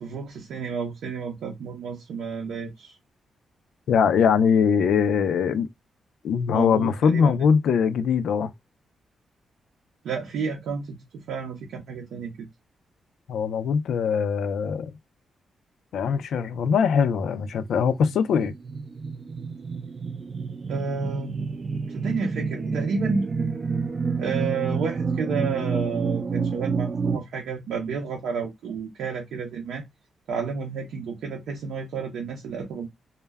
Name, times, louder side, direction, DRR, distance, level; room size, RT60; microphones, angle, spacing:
voice 1, 0.0-2.9 6.5-7.3 10.0-12.5 20.7-21.4 21.9-23.3 24.2-29.8 30.3-32.9, right 5 dB, 85° right, 0.6 m, -31 dB
voice 2, 3.9-5.7 6.2-8.5 13.3-14.9 15.9-18.5, left 6 dB, 80° left, 0.3 m, -22 dB
sound 1, 17.4-27.2, right 5 dB, 40° right, 0.4 m, -29 dB
2.2 x 2.0 x 3.3 m
cardioid pair, 110°, 0 cm